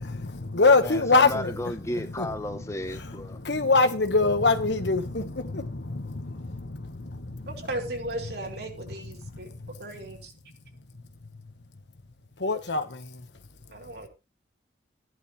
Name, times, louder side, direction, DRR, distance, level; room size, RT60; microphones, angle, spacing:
voice 1, 0.2-1.5 2.2-2.3 3.4-7.5 12.4-13.2, left 3 dB, 80° left, 1.5 m, -24 dB
voice 2, 0.8-3.4, left 1 dB, 15° left, 1.0 m, -34 dB
voice 3, 7.5-9.5 9.8-10.3 13.7-14.1, right 1 dB, 65° right, 3.3 m, -36 dB
14.0 x 11.5 x 3.3 m
head